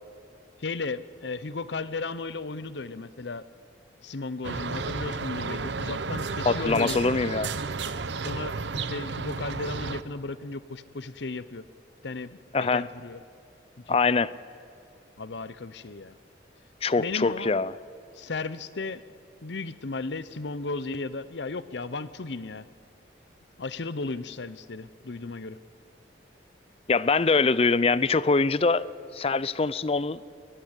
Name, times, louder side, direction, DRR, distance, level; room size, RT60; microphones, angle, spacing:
voice 1, 0.6-3.4 4.0-6.9 8.2-11.6 12.0-13.2 13.8-14.2 15.2-16.1 17.0-17.6 18.1-19.0 19.4-22.6 23.6-25.6, left 3 dB, 70° left, 0.8 m, -35 dB
sound 1, 4.4-10.0, right 4 dB, 75° right, 0.8 m, -32 dB
voice 2, 6.4-7.5 12.5-12.9 13.9-14.3 16.8-17.7 26.9-30.2, left 4 dB, 35° left, 0.5 m, -24 dB
22.5 x 20.5 x 8.3 m
head